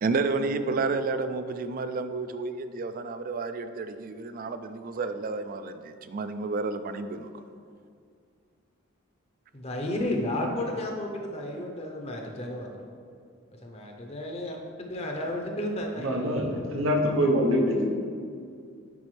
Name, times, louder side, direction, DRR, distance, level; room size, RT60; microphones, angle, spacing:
voice 1, 0.0-7.4 10.3-10.6, right 3 dB, 45° right, 10 dB, 0.3 m, -31 dB
voice 2, 9.5-12.9 13.6-14.6 14.9-16.1 16.5-16.8, left 1 dB, 30° left, 2 dB, 0.7 m, -32 dB
voice 3, 16.0-17.9, equal, 75° right, 2 dB, 0.8 m, -24 dB
9.8 x 4.1 x 3.2 m, 2.3 s
head